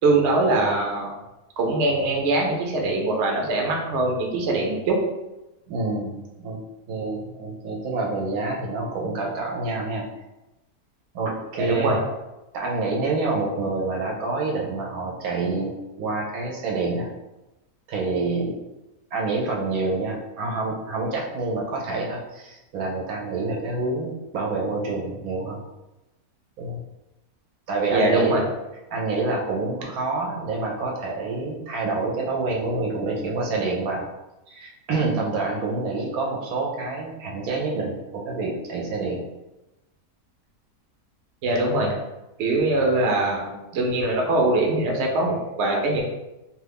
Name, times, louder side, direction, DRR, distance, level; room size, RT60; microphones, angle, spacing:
voice 1, 0.0-1.1 1.6-5.0 11.6-12.0 27.9-28.4 41.4-41.9 42.4-46.0, right 2 dB, 60° right, 0 dB, 0.8 m, -22 dB
voice 2, 5.7-6.6 6.9-10.0 11.1-12.0 12.5-15.7 16.0-17.1 17.9-18.5 19.1-25.6 26.6-26.8 27.7-28.3 28.9-34.0 34.5-39.2, right 3 dB, 75° right, -1 dB, 1.0 m, -27 dB
2.6 x 2.4 x 3.4 m, 0.99 s
omnidirectional pair, 1.6 m